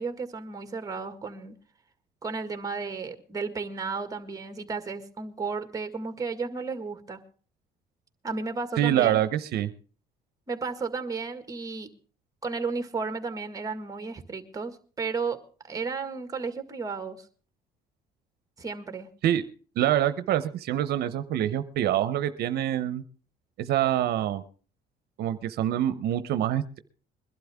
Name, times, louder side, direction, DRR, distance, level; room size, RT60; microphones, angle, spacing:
voice 1, 0.0-1.6 2.2-7.2 8.2-9.2 10.5-11.9 12.4-15.4 15.7-17.3 18.6-19.1, right 4 dB, 20° right, 9 dB, 1.8 m, -33 dB
voice 2, 8.8-9.7 19.2-19.4 19.8-23.0 23.6-24.4 25.2-26.8, right 11 dB, 70° right, 12 dB, 0.8 m, -25 dB
21.5 x 12.0 x 3.5 m, 0.39 s
cardioid pair, 110°, 17 cm